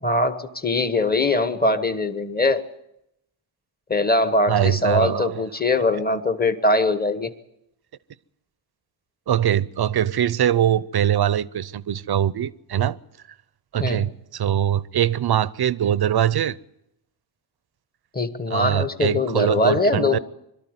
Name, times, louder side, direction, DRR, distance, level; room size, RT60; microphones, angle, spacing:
voice 1, 0.0-2.7 3.9-7.3 13.8-14.1 18.1-20.2, left 2 dB, 20° left, 1.3 m, -22 dB
voice 2, 4.5-5.4 9.3-13.0 13.7-16.6 18.5-20.2, right 10 dB, 55° right, 0.7 m, -22 dB
22.0 x 13.0 x 9.7 m
cardioid pair, 80°, 47 cm